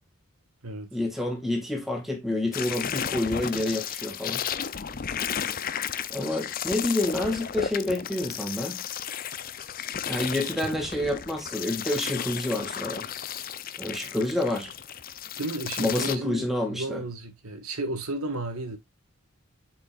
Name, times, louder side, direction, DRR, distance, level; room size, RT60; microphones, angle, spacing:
voice 1, 0.9-4.4 6.1-8.8 10.1-13.1 13.8-14.7 15.8-17.0, left 1 dB, ahead, 2.2 m, -28 dB
sound 1, 2.5-16.2, left 8 dB, 40° left, 0.6 m, -34 dB
voice 2, 15.4-18.8, right 2 dB, 85° right, 1.8 m, -33 dB
7.9 x 5.6 x 2.5 m
head